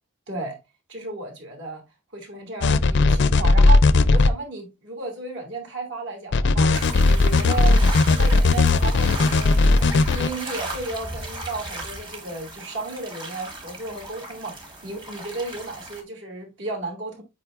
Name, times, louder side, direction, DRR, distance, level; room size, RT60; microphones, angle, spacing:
voice 1, 0.9-1.8 2.1-7.8 8.1-9.8 10.1-17.2, right 3 dB, 60° right, 2.5 m, -33 dB
sound 1, 2.6-4.3 6.3-10.3, left 3 dB, 55° left, 0.4 m, -17 dB
sound 2, 6.7-16.0, right 2 dB, 20° right, 1.3 m, -36 dB
8.1 x 4.9 x 2.5 m
head